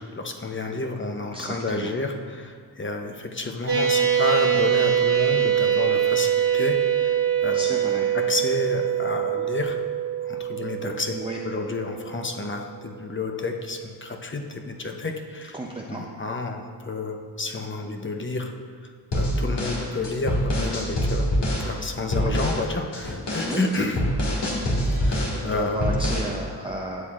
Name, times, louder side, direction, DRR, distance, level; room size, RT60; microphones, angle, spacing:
voice 1, 0.1-7.7 8.1-9.8 10.2-11.2 11.4-15.6 15.9-18.5 18.8-21.3 21.6-24.0 25.0-25.9, left 3 dB, 30° left, 3 dB, 0.8 m, -30 dB
voice 2, 1.3-1.9 7.5-8.1 11.1-11.4 15.5-16.1 22.1-22.4 23.5-24.0 25.1-27.1, right 1 dB, 15° right, -2 dB, 0.6 m, -33 dB
sound 1, 3.7-12.4, right 9 dB, 70° right, 2.0 m, -23 dB
sound 2, 19.1-21.7 22.1-22.6 22.9-25.4 25.8-26.3, equal, 75° left, 2.2 m, -25 dB
12.5 x 7.8 x 2.5 m, 2.1 s
wide cardioid pair, 85°, 42 cm